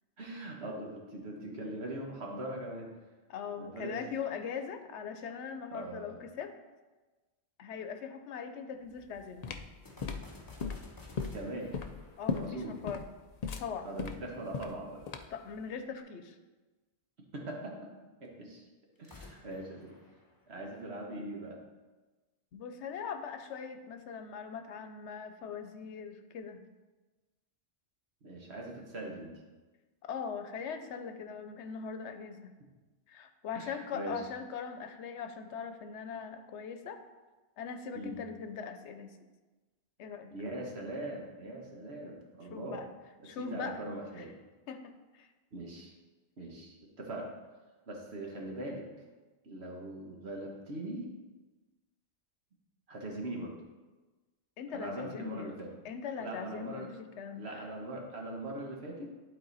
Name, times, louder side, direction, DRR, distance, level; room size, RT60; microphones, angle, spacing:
voice 1, 0.2-2.9 3.6-4.0 5.7-6.2 11.3-11.8 12.3-12.9 13.8-15.0 17.3-17.9 18.2-18.6 19.0-19.9 20.5-21.6 28.2-29.4 33.5-34.3 37.9-38.3 40.3-42.8 43.2-44.3 45.5-45.9 46.4-47.3 47.9-48.9 49.4-51.1 52.9-53.5 54.7-55.7 56.2-56.9 57.4-59.1, right 1 dB, 70° right, 0 dB, 1.6 m, -41 dB
voice 2, 3.3-6.5 7.6-9.6 12.2-13.0 13.6-13.9 15.3-16.4 22.5-26.7 30.0-32.5 33.1-37.0 37.6-39.3 40.0-40.3 42.5-42.9 43.2-43.8 44.2-44.3 44.7-45.3 54.6-55.6 55.8-57.4, left 6 dB, 90° left, 8 dB, 1.0 m, -41 dB
sound 1, 9.0-15.5, left 5 dB, 55° left, 0.4 m, -38 dB
sound 2, 9.8-13.3 19.0-21.1, left 2 dB, 20° left, 0.9 m, -53 dB
11.5 x 4.2 x 4.0 m, 1.2 s
omnidirectional pair, 1.1 m